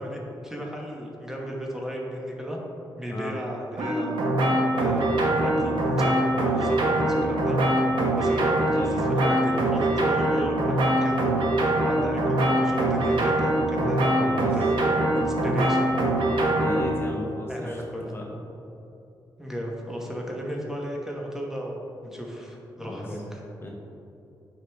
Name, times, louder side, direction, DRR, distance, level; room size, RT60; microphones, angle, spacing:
voice 1, 0.0-2.6 3.0-4.2 4.7-7.6 8.2-11.4 11.8-14.3 14.5-14.8 15.1-16.0 17.5-18.1 19.4-21.8 22.0-23.4, equal, 5° right, -1 dB, 1.1 m, -34 dB
sound 1, 3.8-16.9, right 1 dB, 85° right, 1.1 m, -23 dB
voice 2, 14.2-14.5 16.6-17.8 18.1-18.4 22.8-23.0 23.6-23.7, left 1 dB, 30° left, -1 dB, 0.8 m, -35 dB
7.9 x 5.0 x 3.5 m, 2.9 s
cardioid pair, 100°, 8 cm